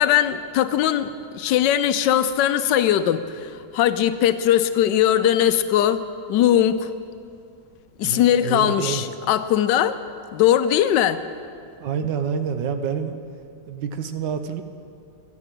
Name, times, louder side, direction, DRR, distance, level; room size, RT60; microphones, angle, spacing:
voice 1, 0.0-6.0 6.3-6.9 8.0-10.0 10.3-11.2, left 11 dB, 80° left, 12 dB, 1.2 m, -20 dB
voice 2, 8.0-9.0 11.8-13.2 13.7-14.6, right 7 dB, 80° right, 8 dB, 1.4 m, -27 dB
11.5 x 9.7 x 7.6 m, 2.4 s
omnidirectional pair, 1.9 m